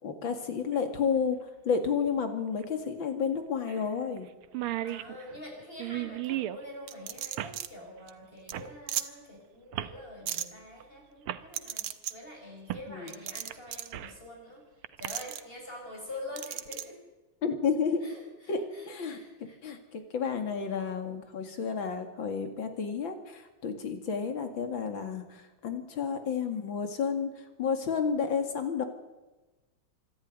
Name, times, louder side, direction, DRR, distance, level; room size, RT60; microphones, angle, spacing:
voice 1, 0.0-1.4 1.6-4.3 12.9-13.1 17.4-18.0 18.5-19.2 19.6-27.3 27.6-28.8, left 6 dB, 65° left, 7 dB, 3.0 m, -31 dB
sound 1, 0.7-0.8 2.6-2.7 3.0-3.1 3.7-3.9 4.2-4.3 4.4-6.6 7.4-7.6 8.5-8.7 9.7-10.0 10.8-10.9 11.3-11.4 12.7-12.9 13.3-14.2 14.8-15.1, right 13 dB, 90° right, 1.8 m, -35 dB
voice 2, 4.8-14.6 15.0-17.0 18.0-19.6, left 1 dB, 25° left, 0 dB, 6.8 m, -46 dB
sound 2, 6.9-7.7 8.1-8.2 8.5-8.6 8.9-9.1 10.3-10.5 11.5-12.1 13.1-13.9 15.0-15.4 16.4-16.8, right 11 dB, 70° right, 1.7 m, -35 dB
25.5 x 12.0 x 9.5 m, 1.1 s
omnidirectional pair, 2.3 m